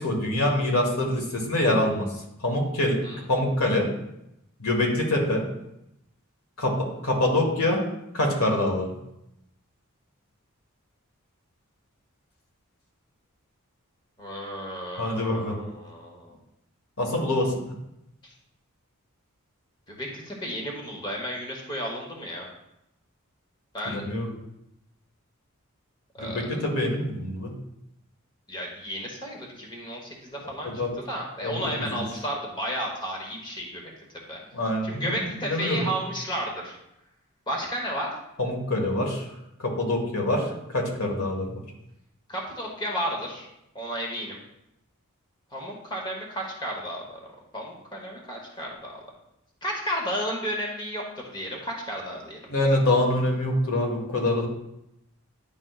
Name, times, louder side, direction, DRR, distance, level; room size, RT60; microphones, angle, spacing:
voice 1, 0.0-2.0 2.4-3.9 4.6-5.5 6.6-7.8 8.1-8.9 15.0-15.6 17.0-17.5 23.8-24.3 26.2-27.5 30.6-30.9 31.4-32.0 34.5-35.9 38.4-39.3 39.6-41.6 52.5-54.5, left 1 dB, 85° left, 1 dB, 1.5 m, -25 dB
voice 2, 14.2-16.4 18.2-18.3 19.9-22.5 23.7-24.0 26.1-26.5 28.5-33.8 34.1-34.4 34.8-36.8 37.5-38.2 42.3-43.5 43.7-44.4 45.5-47.3 47.5-49.0 49.6-52.5, equal, 20° left, -1 dB, 1.1 m, -33 dB
10.0 x 5.3 x 2.4 m, 0.84 s
head